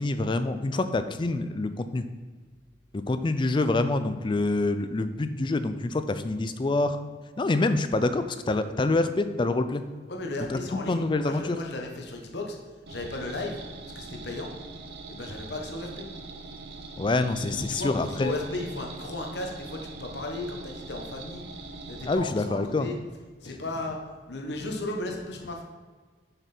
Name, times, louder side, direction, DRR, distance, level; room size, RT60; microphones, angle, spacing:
voice 1, 0.0-2.1 2.9-7.0 7.4-9.8 10.5-11.6 17.0-18.3 22.1-22.9, left 2 dB, 25° left, 10 dB, 0.4 m, -26 dB
voice 2, 10.1-12.6 12.9-13.6 13.9-14.5 15.1-16.0 17.5-21.4 21.9-23.0 23.4-24.0 24.3-25.6, left 2 dB, 75° left, 1 dB, 1.2 m, -35 dB
sound 1, 12.9-22.1, right 3 dB, 65° right, 0.7 m, -42 dB
6.8 x 5.9 x 4.4 m, 1.4 s
head